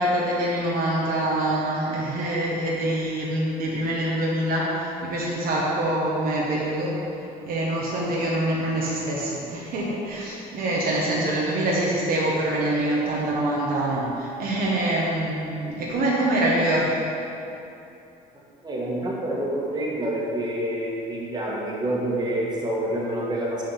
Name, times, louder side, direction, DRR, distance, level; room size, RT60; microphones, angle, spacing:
voice 1, 0.0-17.0, right 1 dB, 60° right, -4 dB, 1.1 m, -25 dB
voice 2, 18.6-23.6, right 1 dB, 25° right, -5 dB, 1.7 m, -27 dB
5.8 x 4.9 x 5.8 m, 2.8 s
cardioid pair, 110°, 17 cm